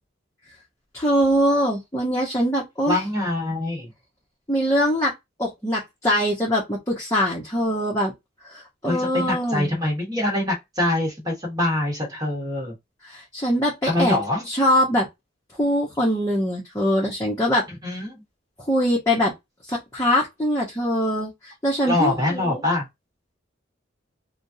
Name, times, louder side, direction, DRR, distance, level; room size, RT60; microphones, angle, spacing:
voice 1, 0.9-3.0 4.5-5.1 5.4-8.1 8.4-9.7 13.1-14.2 14.5-15.1 15.6-17.6 18.7-19.3 19.7-22.6, equal, 15° left, 1.0 m, -22 dB
voice 2, 2.9-3.9 8.9-12.7 13.9-14.5 17.8-18.2 21.9-22.9, left 1 dB, 20° right, 1.4 m, -24 dB
3.5 x 2.4 x 2.8 m
head